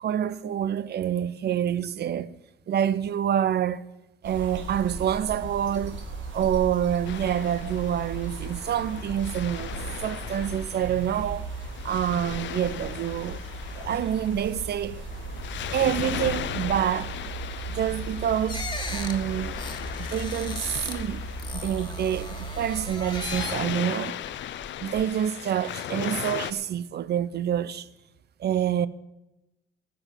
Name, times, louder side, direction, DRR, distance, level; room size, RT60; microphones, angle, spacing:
voice 1, 0.0-2.4 2.7-3.8 4.2-6.0 6.3-9.7 10.0-11.5 11.8-13.4 13.8-15.0 15.7-17.2 17.7-18.6 18.9-19.5 20.0-21.2 21.5-24.2 24.8-27.9 28.4-28.9, right 10 dB, 55° right, 0.7 m, -27 dB
sound 1, 4.2-23.4, right 3 dB, 70° right, 2.6 m, -37 dB
Waves surf, 7.0-26.5, left 11 dB, 70° left, 0.6 m, -38 dB
sound 2, 18.5-21.0 21.4-23.7 24.2-25.0, left 3 dB, 20° left, 1.6 m, -38 dB
13.5 x 6.1 x 9.0 m
cardioid pair, 90°, 20 cm